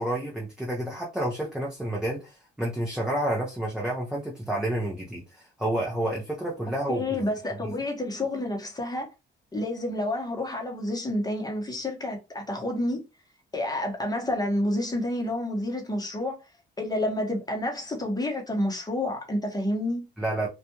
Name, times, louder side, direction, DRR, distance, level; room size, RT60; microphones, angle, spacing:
voice 1, 0.0-7.0 7.6-7.7 20.2-20.5, right 1 dB, 5° right, 0.7 m, -30 dB
voice 2, 6.9-9.1 9.5-13.0 13.5-16.3 16.8-20.1, left 1 dB, 20° left, 1.0 m, -29 dB
2.4 x 2.3 x 2.9 m
cardioid pair, 90°, 20 cm